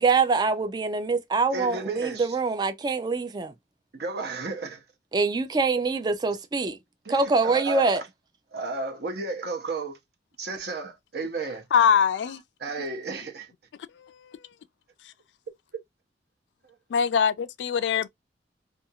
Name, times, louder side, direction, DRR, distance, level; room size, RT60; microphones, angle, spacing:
voice 1, 0.0-3.5 5.1-6.8 7.1-8.0, right 4 dB, 25° right, 0.3 m, -24 dB
voice 2, 1.5-2.4 3.9-4.8 7.0-8.1 8.5-10.0 10.4-11.6 12.6-13.5, right 3 dB, 60° right, 0.8 m, -33 dB
voice 3, 11.7-12.4 14.0-14.4 15.0-15.1 16.9-18.1, left 7 dB, 75° left, 0.3 m, -23 dB
2.5 x 2.3 x 2.7 m
head